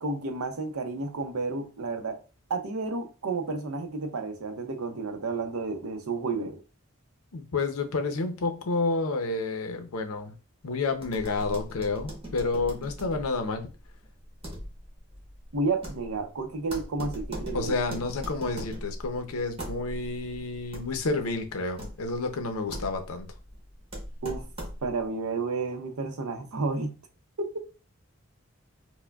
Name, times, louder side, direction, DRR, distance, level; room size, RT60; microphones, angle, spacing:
voice 1, 0.0-2.2 2.5-6.6 15.5-17.7 24.2-24.4 24.8-26.9 27.4-27.7, right 3 dB, 90° right, 0.6 m, -31 dB
voice 2, 7.3-10.3 10.6-13.7 17.5-23.3, left 3 dB, 85° left, 0.6 m, -30 dB
sound 1, 11.0-25.1, equal, 25° right, 1.0 m, -40 dB
4.6 x 2.1 x 2.3 m
head